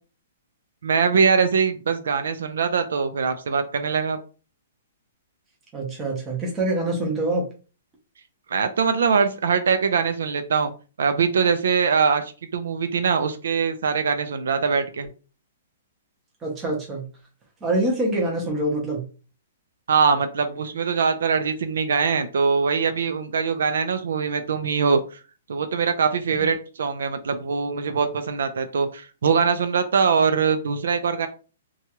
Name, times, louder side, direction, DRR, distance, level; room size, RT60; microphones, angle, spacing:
voice 1, 0.8-4.2 8.5-10.7 11.0-15.1 19.9-25.2 25.5-31.3, right 5 dB, 70° right, 0.4 m, -22 dB
voice 2, 5.7-7.5 16.4-17.1 17.6-19.0, right 1 dB, 10° right, 0.7 m, -25 dB
2.9 x 2.3 x 2.9 m
hypercardioid pair, 180°, 0 cm